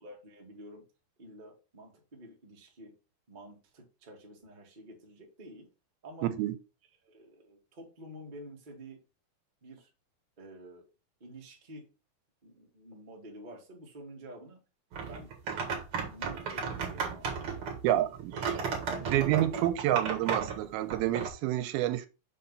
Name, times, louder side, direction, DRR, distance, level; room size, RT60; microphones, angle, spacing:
voice 1, 0.0-0.8 1.2-2.9 3.3-5.7 6.0-6.3 7.0-9.0 9.6-9.9 10.4-10.8 11.2-11.9 12.4-14.6 15.0-15.3 15.9-17.7 18.3-19.7, right 1 dB, 30° right, 0.8 m, -49 dB
sound 1, 14.9-21.3, right 6 dB, 50° right, 1.9 m, -34 dB
voice 2, 17.8-18.3 19.1-22.1, right 13 dB, 85° right, 2.5 m, -28 dB
6.5 x 3.9 x 5.4 m
omnidirectional pair, 4.4 m